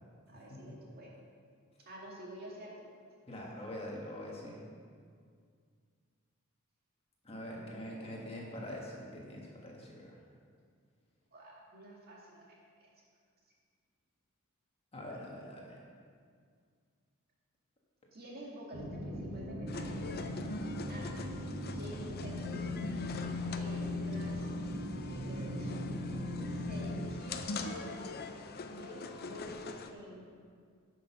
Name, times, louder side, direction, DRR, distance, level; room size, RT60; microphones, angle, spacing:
voice 1, 0.3-1.1 1.9-2.7 7.4-8.6 11.3-12.9 18.1-20.2 20.9-21.2 21.7-22.8 23.6-24.5 25.1-26.1 26.5-28.0 28.7-30.3, right 1 dB, 45° right, -3 dB, 2.0 m, -49 dB
voice 2, 3.3-4.7 7.2-10.2 14.9-15.8, left 1 dB, 25° left, -3 dB, 1.6 m, -44 dB
sound 1, 18.7-27.0, left 1 dB, 75° right, 2.9 m, -38 dB
sound 2, 19.7-29.9, left 3 dB, 45° left, 0.6 m, -44 dB
10.0 x 6.1 x 5.9 m, 2.1 s
head